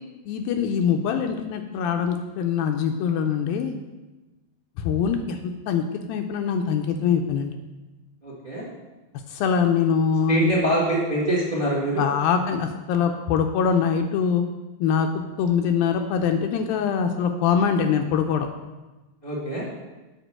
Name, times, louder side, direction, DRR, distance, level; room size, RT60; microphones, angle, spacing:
voice 1, 0.3-3.7 4.8-5.4 5.7-7.6 9.3-10.5 12.0-14.4 14.8-15.1 15.4-18.5, left 7 dB, 80° left, 5 dB, 2.2 m, -23 dB
voice 2, 8.2-8.7 10.3-12.0 19.2-19.7, right 1 dB, 30° right, -4 dB, 1.0 m, -24 dB
8.1 x 5.1 x 7.4 m, 1.1 s
omnidirectional pair, 4.4 m